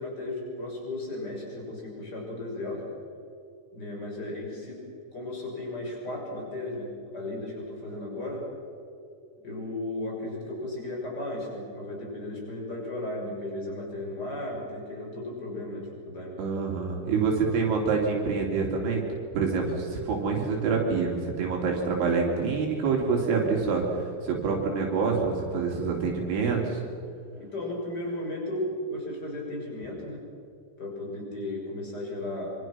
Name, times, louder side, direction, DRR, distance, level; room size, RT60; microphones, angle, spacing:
voice 1, 0.0-2.8 3.7-8.5 9.4-16.3 27.3-30.2 30.8-32.5, left 1 dB, 20° left, -1 dB, 6.7 m, -35 dB
voice 2, 16.4-19.1 19.3-26.8, right 5 dB, 70° right, 0 dB, 5.2 m, -26 dB
26.5 x 26.0 x 6.2 m, 2.5 s
omnidirectional pair, 5.6 m